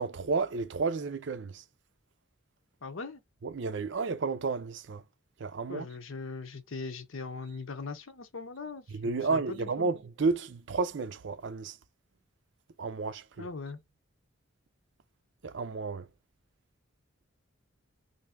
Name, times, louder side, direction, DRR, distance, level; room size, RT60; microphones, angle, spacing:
voice 1, 0.0-1.6 3.4-5.0 5.4-5.9 8.9-11.8 12.8-13.5 15.4-16.1, right 4 dB, 60° right, 0.5 m, -32 dB
voice 2, 2.8-3.2 5.7-9.9 13.4-13.8, left 4 dB, 75° left, 0.7 m, -40 dB
3.2 x 2.7 x 3.5 m
head